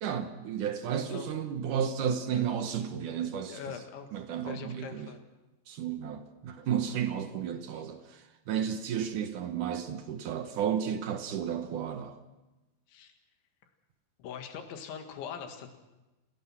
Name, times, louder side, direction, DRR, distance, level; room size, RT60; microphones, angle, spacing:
voice 1, 0.0-3.6 4.1-5.1 5.7-12.2, right 8 dB, 70° right, 8 dB, 1.9 m, -33 dB
voice 2, 0.9-1.3 2.3-2.4 3.5-4.1 4.4-5.2 7.7-7.8 12.9-13.1 14.2-15.7, left 7 dB, 85° left, 6 dB, 4.2 m, -42 dB
28.0 x 17.5 x 6.0 m, 1.0 s
omnidirectional pair, 5.2 m